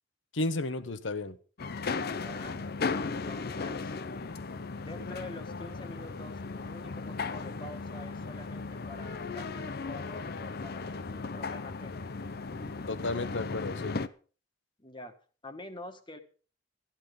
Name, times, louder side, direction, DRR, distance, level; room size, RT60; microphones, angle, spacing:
voice 1, 0.3-1.4 12.9-14.0, left 2 dB, 80° left, 1.0 m, -32 dB
sound 1, 1.6-14.1, left 4 dB, 55° left, 0.7 m, -36 dB
voice 2, 2.1-2.6 3.1-3.9 4.8-12.3 14.8-15.1 15.4-16.2, left 1 dB, 25° left, 1.4 m, -47 dB
13.5 x 10.5 x 5.2 m
head